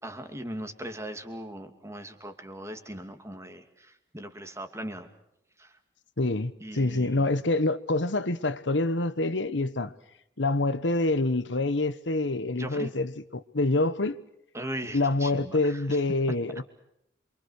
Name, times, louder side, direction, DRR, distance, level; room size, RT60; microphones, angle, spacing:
voice 1, 0.0-5.1 5.6-5.7 6.6-7.4 12.6-12.9 14.5-16.0, right 1 dB, 15° right, 2.6 m, -39 dB
voice 2, 6.2-9.9 10.4-14.2 14.9-16.6, left 2 dB, 80° left, 1.2 m, -26 dB
28.0 x 24.5 x 6.6 m
head